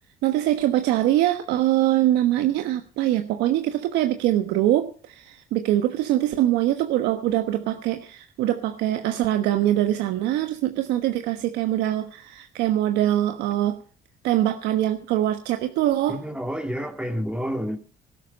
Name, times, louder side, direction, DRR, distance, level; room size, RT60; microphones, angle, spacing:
voice 1, 0.2-13.8 14.2-16.2, right 13 dB, 90° right, 7 dB, 1.3 m, -23 dB
voice 2, 16.1-17.8, equal, 5° right, 6 dB, 2.4 m, -29 dB
18.5 x 11.5 x 5.3 m, 0.39 s
cardioid pair, 110°, 17 cm